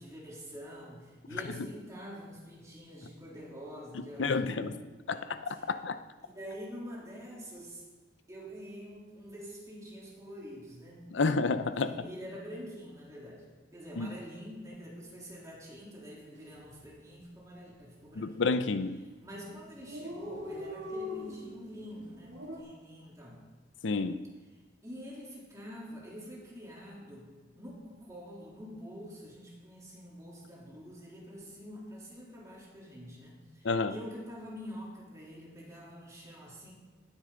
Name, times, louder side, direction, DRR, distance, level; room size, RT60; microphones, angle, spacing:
voice 1, 0.0-4.8 5.1-5.7 6.2-7.8 8.3-11.4 11.7-13.4 13.7-18.4 19.2-23.5 24.8-36.7, equal, 20° right, -4 dB, 3.4 m, -46 dB
voice 2, 4.2-4.7 5.1-6.0 11.1-11.9 14.0-14.1 18.2-19.0 23.8-24.2 33.6-33.9, left 4 dB, 90° left, 11 dB, 0.7 m, -30 dB
Dog, 16.4-16.6 16.9-17.0 17.3-17.9 18.6-18.8 19.1-19.2 19.4-19.5 19.7-22.6, left 2 dB, 75° right, 2.6 m, -42 dB
18.0 x 9.9 x 3.9 m, 1.3 s
head